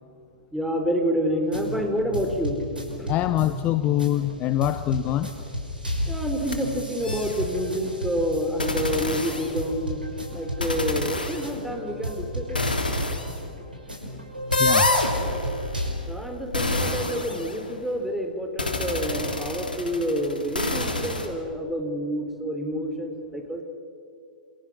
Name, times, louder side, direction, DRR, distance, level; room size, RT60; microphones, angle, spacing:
voice 1, 0.5-2.6 3.0-3.2 6.1-10.0 10.3-12.6 16.1-23.6, equal, ahead, 4 dB, 3.7 m, -28 dB
sound 1, 1.4-15.9, equal, 85° right, 5.8 m, -34 dB
voice 2, 3.1-5.3 14.6-14.9, left 13 dB, 30° left, 12 dB, 0.8 m, -24 dB
sound 2, 6.4-6.5 7.0-7.5 8.6-9.8 10.6-11.5 12.5-13.3 14.5-17.9 18.6-21.3, left 2 dB, 85° left, 3.4 m, -27 dB
29.0 x 27.5 x 6.2 m, 2.5 s
figure-of-eight pair, 105°, 5 cm